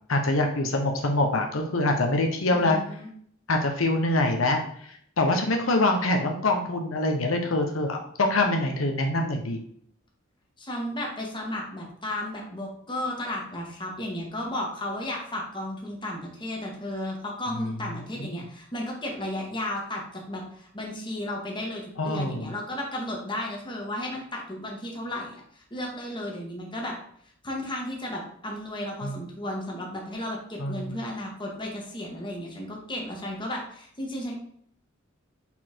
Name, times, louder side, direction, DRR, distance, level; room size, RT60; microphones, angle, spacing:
voice 1, 0.1-2.8 3.5-4.6 4.9-9.6 18.2-18.4 22.0-22.5 29.0-29.2 30.6-31.0, left 2 dB, 90° left, 3 dB, 1.0 m, -25 dB
voice 2, 2.5-3.1 10.6-26.9 27.4-34.4, left 1 dB, 25° left, -1 dB, 1.7 m, -34 dB
5.6 x 4.4 x 4.5 m, 0.64 s
head